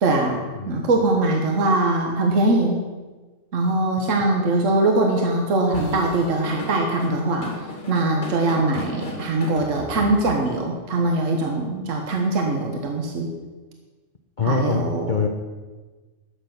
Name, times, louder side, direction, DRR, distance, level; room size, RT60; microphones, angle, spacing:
voice 1, 0.0-0.4 0.7-2.8 3.5-7.5 7.9-13.3 14.4-15.2, right 2 dB, 70° right, 2 dB, 1.6 m, -22 dB
voice 2, 0.6-0.9 8.7-8.9 14.4-14.8 15.1-15.3, left 4 dB, 40° left, 3 dB, 0.9 m, -24 dB
Drum kit / Drum, 5.7-10.6, left 1 dB, 60° left, 2.5 m, -36 dB
12.0 x 7.8 x 6.0 m, 1.3 s
omnidirectional pair, 1.4 m